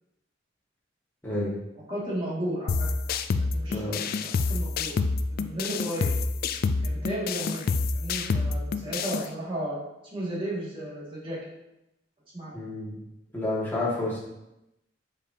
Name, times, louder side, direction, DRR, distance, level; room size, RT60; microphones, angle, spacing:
voice 1, 1.9-2.9 3.5-4.9 5.3-6.1 6.8-7.7 7.9-9.8 10.1-11.4 12.3-12.6, right 1 dB, 30° right, -7 dB, 2.1 m, -34 dB
sound 1, 2.7-9.3, left 4 dB, 50° left, 0.3 m, -28 dB
voice 2, 3.7-4.0 12.5-12.9 13.3-14.2, left 2 dB, 10° left, -8 dB, 1.9 m, -29 dB
6.7 x 5.0 x 2.8 m, 0.89 s
head